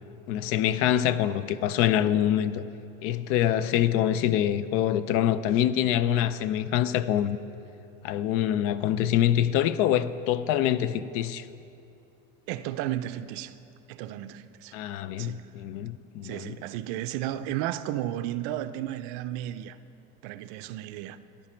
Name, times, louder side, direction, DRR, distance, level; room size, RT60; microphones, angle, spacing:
voice 1, 0.3-2.6 3.0-7.4 8.0-11.5 14.7-16.6, left 11 dB, 45° left, 0.4 m, -25 dB
voice 2, 12.5-13.5 13.9-14.8 15.2-15.4 16.2-19.8 20.2-21.2, right 13 dB, 60° right, 0.5 m, -33 dB
14.5 x 11.0 x 4.4 m
cardioid pair, 160°, 33 cm